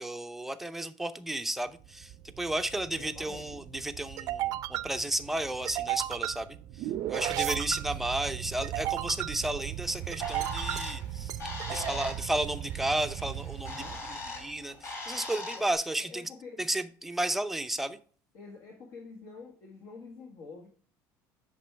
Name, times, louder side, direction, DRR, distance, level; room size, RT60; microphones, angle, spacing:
voice 1, 0.0-11.3 11.7-13.9 14.4-16.2 16.6-18.0, right 1 dB, 5° right, 8 dB, 0.6 m, -33 dB
sound 1, 1.8-14.6, right 13 dB, 55° right, 0.5 m, -36 dB
voice 2, 3.0-3.6 11.7-11.9 13.6-14.1 15.6-15.7 16.0-16.7 18.3-20.7, left 4 dB, 55° left, 1 dB, 1.6 m, -47 dB
Bird, 9.8-15.7, left 2 dB, 40° left, 2.8 m, -41 dB
8.3 x 6.2 x 3.4 m, 0.43 s
cardioid pair, 140°, 7 cm